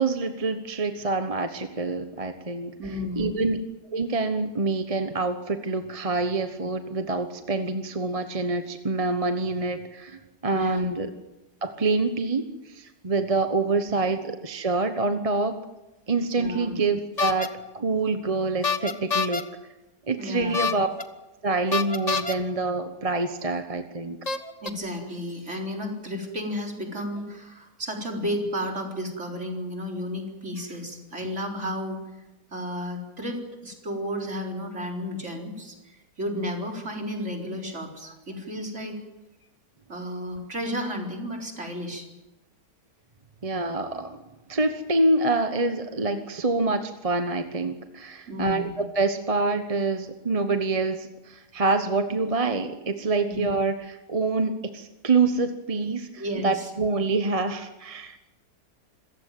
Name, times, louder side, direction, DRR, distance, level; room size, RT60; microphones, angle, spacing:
voice 1, 0.0-2.7 3.2-3.6 3.9-11.1 11.6-15.6 16.1-19.4 20.1-20.9 21.4-24.2 43.4-44.2 44.5-58.2, right 3 dB, 25° right, 8 dB, 1.0 m, -26 dB
voice 2, 2.8-3.4 10.5-10.9 16.3-16.7 20.2-20.7 24.6-32.0 32.5-39.0 39.9-42.1 48.3-48.7 53.3-53.4 56.2-56.7, equal, 45° right, 1 dB, 4.4 m, -32 dB
sound 1, 17.2-17.5 18.6-19.4 20.5-21.0 21.7-22.3 23.4-23.5 24.3-24.7, left 5 dB, 25° left, 1.3 m, -26 dB
26.5 x 15.5 x 9.3 m, 1.0 s
omnidirectional pair, 1.7 m